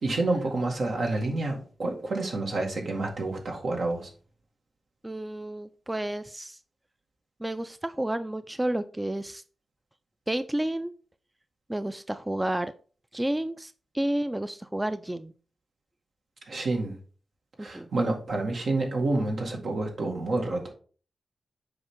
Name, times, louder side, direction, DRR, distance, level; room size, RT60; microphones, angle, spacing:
voice 1, 0.0-4.1 16.5-17.0 17.6-20.7, right 2 dB, 75° right, 1 dB, 2.0 m, -28 dB
voice 2, 5.0-6.6 7.4-9.4 10.3-10.9 11.7-12.7 13.1-15.3 17.6-17.9, right 1 dB, 15° right, 12 dB, 0.4 m, -31 dB
7.8 x 5.0 x 3.7 m, 0.41 s
cardioid pair, 80°, 0 cm